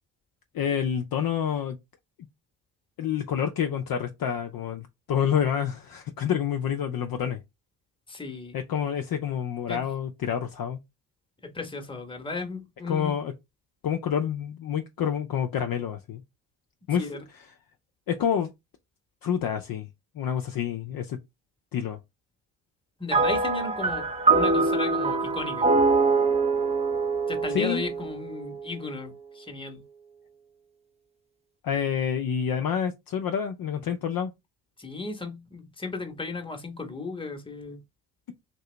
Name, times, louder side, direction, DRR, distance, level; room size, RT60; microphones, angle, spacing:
voice 1, 0.5-1.8 3.0-7.4 8.5-10.8 12.9-13.3 13.8-16.2 16.9-17.5 18.1-18.5 19.2-19.9 20.2-21.2 21.7-22.0 27.5-27.8 31.6-34.3, left 8 dB, 45° left, 0.6 m, -28 dB
voice 2, 8.1-8.6 9.7-9.9 11.4-13.2 17.0-17.2 23.0-24.1 24.3-25.7 27.3-29.8 34.8-37.8, left 3 dB, 10° left, 1.0 m, -35 dB
sound 1, 23.1-28.6, right 3 dB, 15° right, 0.5 m, -24 dB
3.0 x 2.7 x 3.2 m
hypercardioid pair, 55°, 50 cm